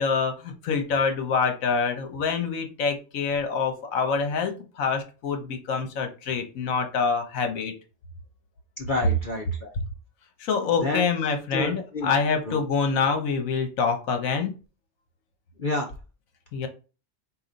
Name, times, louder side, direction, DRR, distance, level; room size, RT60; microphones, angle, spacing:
voice 1, 0.0-7.7 10.4-14.5 16.5-16.7, left 5 dB, 70° left, 6 dB, 1.3 m, -26 dB
voice 2, 8.8-9.7 10.8-11.0 11.5-12.1 12.5-12.6 15.6-15.9, left 2 dB, 50° left, 1 dB, 0.7 m, -29 dB
4.8 x 2.8 x 3.9 m, 0.34 s
omnidirectional pair, 1.5 m